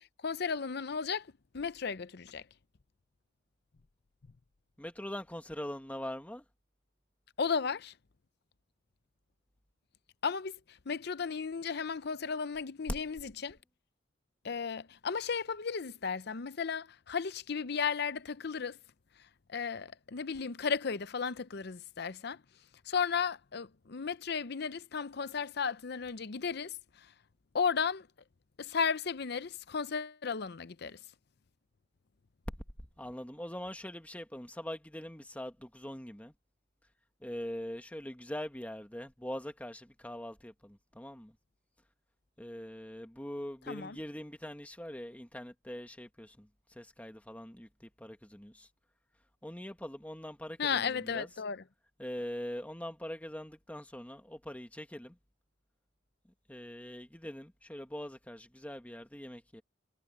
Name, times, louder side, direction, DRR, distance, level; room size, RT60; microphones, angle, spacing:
voice 1, 0.0-2.5 7.4-7.9 10.2-13.6 14.4-18.8 19.5-22.4 22.9-27.1 27.5-28.1 28.6-31.0 43.7-44.0 50.6-51.6, left 6 dB, 60° left, 0.7 m, -34 dB
voice 2, 4.8-6.4 32.5-36.3 37.2-41.3 42.4-46.5 46.7-48.7 49.4-51.3 52.0-55.2 56.5-59.6, left 1 dB, 10° left, 1.6 m, -43 dB
head